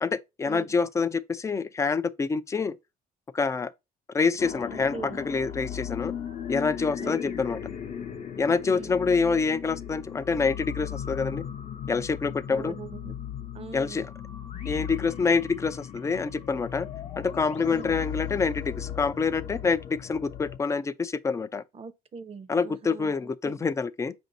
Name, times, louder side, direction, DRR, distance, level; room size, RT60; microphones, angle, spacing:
voice 1, 0.0-2.8 3.3-3.7 4.1-6.1 6.5-7.6 8.4-11.4 11.9-12.7 13.7-14.1 14.7-16.9 17.2-21.6 22.5-24.1, left 4 dB, 15° left, 0.4 m, -26 dB
sound 1, 4.4-20.6, left 9 dB, 45° left, 0.8 m, -37 dB
voice 2, 4.7-5.2 7.0-7.5 8.6-9.0 12.5-13.1 13.5-14.1 17.7-17.9 21.7-23.1 23.4-23.7, right 5 dB, 35° right, 0.6 m, -42 dB
5.1 x 2.7 x 3.9 m
cardioid pair, 110°, 17 cm